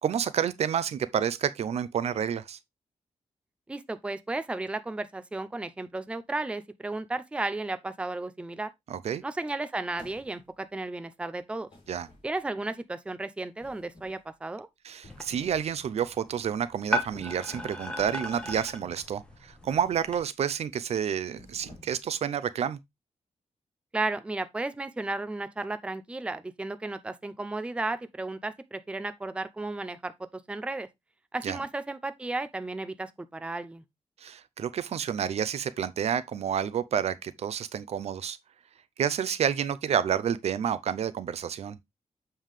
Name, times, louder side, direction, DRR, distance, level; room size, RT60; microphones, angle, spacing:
voice 1, 0.0-2.6 8.9-9.2 11.9-12.1 14.8-22.8 31.4-31.6 34.2-38.4 39.0-41.8, right 8 dB, 65° right, 0.5 m, -29 dB
voice 2, 3.7-8.7 9.2-11.7 12.2-14.7 23.9-30.1 30.5-30.9 31.3-33.8, right 2 dB, 10° right, 0.5 m, -34 dB
sound 1, 9.9-10.6 11.7-12.6 13.6-14.3 14.9-15.7 16.1-16.3 17.1-17.9 18.3-18.9 19.6-20.1 20.5-20.7 21.3-22.1, left 1 dB, 45° left, 3.2 m, -52 dB
sound 2, 15.1-20.2, left 1 dB, 10° left, 1.3 m, -37 dB
7.3 x 5.4 x 3.2 m
wide cardioid pair, 165°, 12 cm